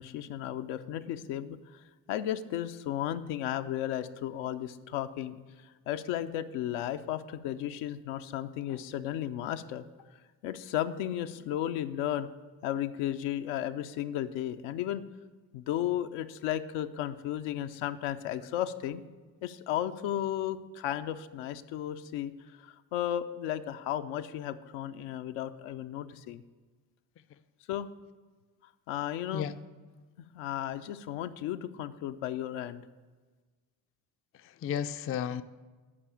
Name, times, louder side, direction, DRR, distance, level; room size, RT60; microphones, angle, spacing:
voice 1, 0.0-1.8 2.1-5.4 5.9-9.8 10.4-12.3 12.6-15.0 15.5-19.0 19.4-22.3 22.6-26.4 27.7-27.9 28.9-29.5 30.2-32.8, left 11 dB, 80° left, 9 dB, 0.6 m, -34 dB
voice 2, 34.3-35.4, left 8 dB, 30° left, 12 dB, 0.4 m, -33 dB
8.7 x 4.8 x 7.1 m, 1.4 s
hypercardioid pair, 55°, 48 cm